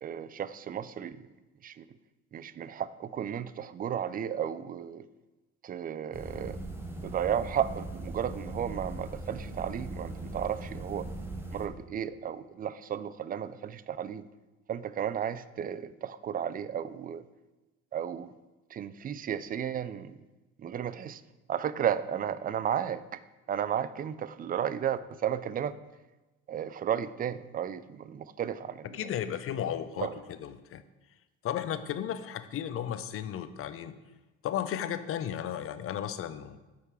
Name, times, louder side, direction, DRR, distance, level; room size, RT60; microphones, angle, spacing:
voice 1, 0.0-1.2 1.6-1.8 2.3-5.1 5.6-6.6 7.0-11.1 11.5-14.2 14.7-17.2 17.9-18.3 18.7-20.2 20.6-21.2 21.5-23.2 23.5-25.7 26.5-29.1 30.0-30.1, right 9 dB, 30° right, 14 dB, 0.4 m, -33 dB
sound 1, 6.1-11.7, right 2 dB, 5° right, 0.9 m, -40 dB
voice 2, 28.8-30.8 31.4-34.0 34.4-36.6, left 10 dB, 45° left, 12 dB, 0.5 m, -34 dB
8.3 x 3.8 x 4.6 m, 1.1 s
supercardioid pair, 90°, 32 cm